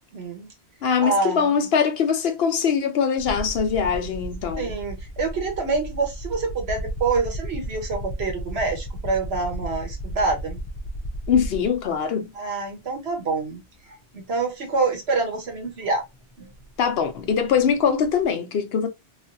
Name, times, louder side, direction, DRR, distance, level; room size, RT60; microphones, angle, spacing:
voice 1, 0.1-0.5 1.0-1.7 4.6-10.6 12.3-13.6 14.1-16.0 16.4-16.5, right 4 dB, 75° right, 1.3 m, -26 dB
voice 2, 0.8-4.8 11.3-12.3 16.8-18.9, left 7 dB, 70° left, 0.9 m, -22 dB
sound 1, 3.2-11.9 13.1-13.2 15.3-15.4 15.7-18.2, equal, 35° left, 0.5 m, -34 dB
3.2 x 2.5 x 2.5 m
omnidirectional pair, 1.1 m